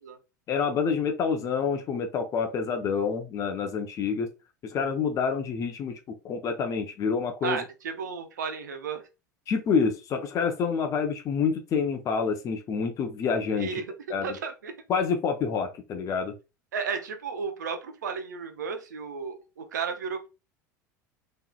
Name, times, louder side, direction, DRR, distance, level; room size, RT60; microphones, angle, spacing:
voice 1, 0.5-4.3 4.6-6.0 6.2-7.6 9.5-13.8 14.1-14.3 14.9-16.3, left 5 dB, 35° left, 5 dB, 0.6 m, -27 dB
voice 2, 7.4-9.0 13.6-13.9 14.2-14.7 16.7-20.3, right 5 dB, 75° right, 6 dB, 0.6 m, -33 dB
3.6 x 3.0 x 2.2 m, 0.28 s
figure-of-eight pair, 75°, 10 cm